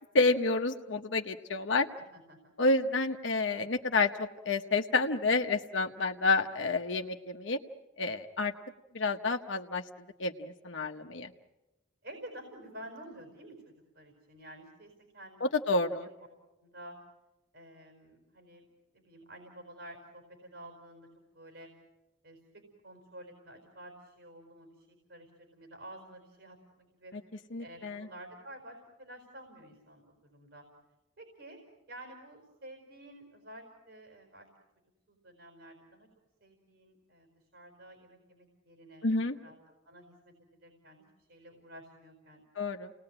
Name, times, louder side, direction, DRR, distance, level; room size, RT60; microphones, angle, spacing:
voice 1, 0.1-1.9 2.6-7.6 8.0-8.5 8.9-9.8 10.2-11.3 15.4-16.1 27.1-27.2 27.5-28.1 39.0-39.4 42.6-42.9, left 3 dB, 80° left, 4 dB, 1.0 m, -29 dB
voice 2, 2.1-2.5 12.0-16.1 16.6-17.0 17.5-18.7 18.9-21.1 21.3-21.7 22.2-27.1 27.6-30.6 31.2-31.6 31.9-34.5 35.1-36.1 36.4-39.6 39.9-41.0 41.3-42.4, right 1 dB, 70° right, 3 dB, 4.7 m, -51 dB
29.5 x 19.5 x 8.8 m, 1.0 s
head